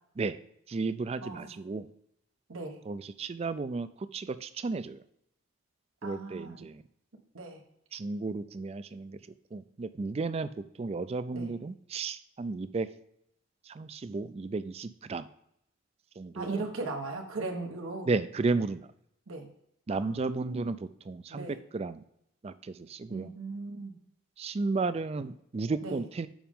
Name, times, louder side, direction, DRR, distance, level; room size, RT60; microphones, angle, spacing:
voice 1, 0.7-1.9 2.9-5.0 6.0-6.8 7.9-9.2 9.5-12.9 13.7-15.3 16.2-16.6 18.1-18.9 19.9-22.0 22.4-23.3 24.4-26.3, right 3 dB, 30° right, 14 dB, 0.3 m, -33 dB
voice 2, 1.2-1.5 2.5-2.8 6.0-6.6 7.3-7.6 11.3-11.5 16.3-18.1 19.3-19.5 19.9-20.7 21.3-21.6 23.1-24.0 25.8-26.0, right 3 dB, 90° right, 2 dB, 1.1 m, -38 dB
7.1 x 5.1 x 3.6 m, 0.75 s
head